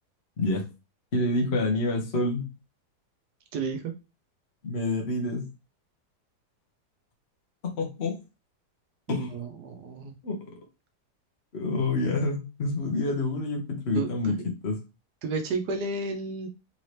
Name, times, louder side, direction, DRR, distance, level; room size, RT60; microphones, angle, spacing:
voice 1, 1.1-2.5 4.6-5.5 7.8-8.2 9.1-9.4 10.2-10.4 11.5-14.3 14.6-14.8, left 2 dB, 45° left, 1 dB, 1.2 m, -27 dB
voice 2, 3.5-3.9 9.1-10.1 13.9-14.4 15.2-16.5, right 4 dB, 75° right, 7 dB, 1.3 m, -32 dB
3.9 x 2.9 x 3.2 m, 0.28 s
omnidirectional pair, 1.8 m